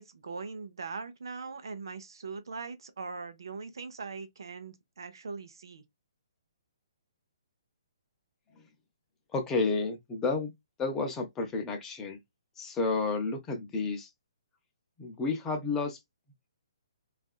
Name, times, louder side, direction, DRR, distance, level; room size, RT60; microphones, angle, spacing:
voice 1, 0.0-5.8, right 4 dB, 70° right, 0.6 m, -41 dB
voice 2, 9.3-10.5 10.8-12.2 12.6-14.1 15.0-16.0, left 4 dB, 15° left, 0.6 m, -31 dB
2.6 x 2.4 x 2.3 m
figure-of-eight pair, 130°, 2 cm